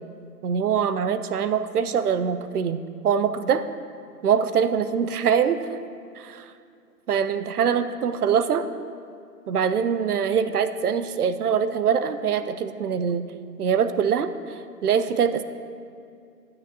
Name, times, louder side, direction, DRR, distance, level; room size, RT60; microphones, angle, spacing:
voice 1, 0.4-3.6 4.2-5.6 6.2-6.5 7.1-8.7 9.5-13.2 13.6-15.4, right 7 dB, 70° right, 12 dB, 0.7 m, -23 dB
12.5 x 9.4 x 2.8 m, 2.3 s
hypercardioid pair, 150°, 48 cm